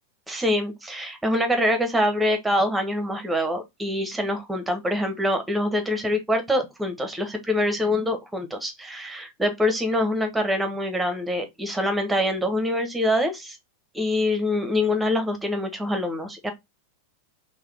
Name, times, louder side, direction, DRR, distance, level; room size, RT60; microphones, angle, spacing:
voice 1, 0.3-13.6 13.9-16.5, left 1 dB, 5° right, 1.2 m, -25 dB
4.0 x 3.3 x 3.4 m
figure-of-eight pair, 90°, 0 cm